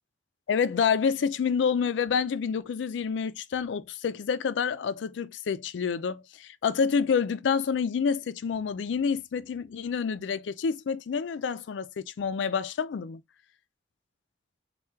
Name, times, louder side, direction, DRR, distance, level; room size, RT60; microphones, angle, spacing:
voice 1, 0.5-13.2, left 6 dB, 85° left, 0.4 m, -28 dB
4.4 x 2.3 x 3.4 m
head